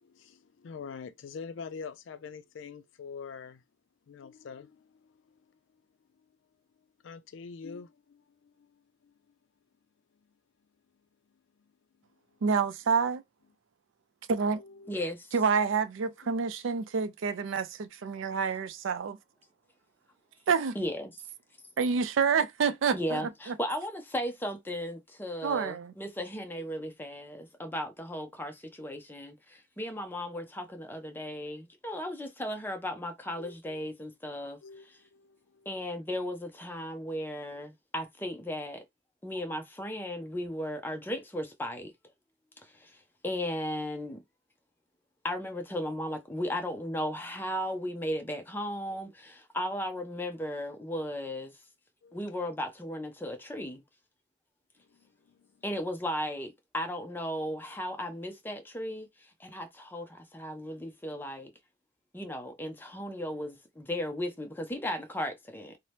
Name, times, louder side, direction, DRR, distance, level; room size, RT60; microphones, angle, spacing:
voice 1, 0.0-3.6 4.1-5.8 6.2-6.3 7.0-9.1 11.6-11.7 12.0-12.1 14.5-15.1 16.2-16.4 33.4-33.8 34.6-35.8 52.0-52.3 54.8-55.6, left 5 dB, 75° left, 0.4 m, -46 dB
voice 2, 12.4-13.2 14.3-14.6 15.3-19.2 20.5-20.8 21.8-23.5 25.4-25.9, right 5 dB, 85° right, 0.4 m, -28 dB
voice 3, 14.9-15.3 20.7-21.1 22.9-34.6 35.7-38.8 39.2-41.9 42.6-43.0 43.2-44.2 45.2-51.5 52.1-53.8 55.6-61.5 62.1-65.8, equal, 10° left, 0.5 m, -36 dB
2.8 x 2.0 x 3.2 m
head